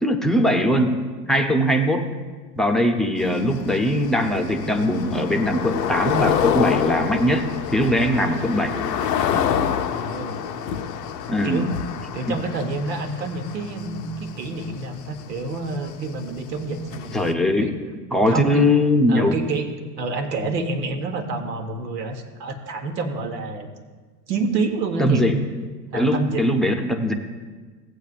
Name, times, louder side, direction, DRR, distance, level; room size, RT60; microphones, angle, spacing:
voice 1, 0.0-2.1 2.6-8.7 11.3-11.7 12.3-12.4 17.1-17.8 18.1-19.4 25.0-25.4 25.9-27.1, equal, ahead, 4 dB, 0.8 m, -21 dB
sound 1, 3.2-17.3, left 9 dB, 80° left, 0.8 m, -28 dB
voice 2, 9.9-10.4 11.4-11.7 12.1-17.2 17.6-17.7 18.2-18.6 19.1-23.7 24.3-25.4 25.9-26.5, right 3 dB, 80° right, 5 dB, 1.4 m, -28 dB
16.5 x 8.3 x 2.5 m, 1.4 s
hypercardioid pair, 95°, 49 cm